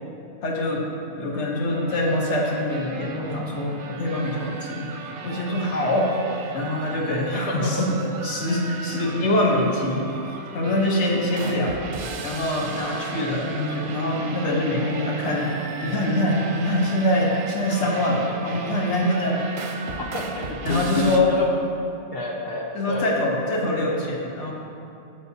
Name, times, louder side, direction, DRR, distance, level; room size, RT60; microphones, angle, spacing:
voice 1, 0.4-0.9 1.2-4.9 5.2-6.1 6.5-8.0 8.2-10.1 10.5-11.8 12.2-15.5 15.8-19.4 20.6-21.3 22.7-24.5, left 1 dB, 75° left, -2 dB, 1.4 m, -24 dB
sound 1, 1.7-21.2, right 4 dB, 55° right, 0.7 m, -36 dB
voice 2, 7.3-7.7 11.4-11.5 20.0-21.5 22.1-23.0, left 2 dB, 60° left, -2 dB, 1.0 m, -30 dB
10.0 x 7.9 x 2.8 m, 2.6 s
omnidirectional pair, 1.2 m